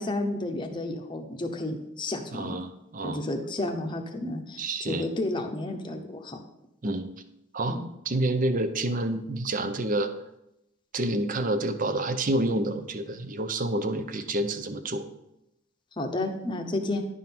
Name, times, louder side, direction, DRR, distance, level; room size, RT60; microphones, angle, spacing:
voice 1, 0.0-2.6 3.0-6.4 7.7-7.8 16.0-17.0, left 2 dB, 25° left, 3 dB, 0.8 m, -31 dB
voice 2, 2.3-3.2 4.6-5.0 6.8-7.1 7.5-7.8 8.1-10.1 10.9-15.0, right 1 dB, 40° right, 9 dB, 0.6 m, -28 dB
10.5 x 3.8 x 5.9 m, 0.86 s
head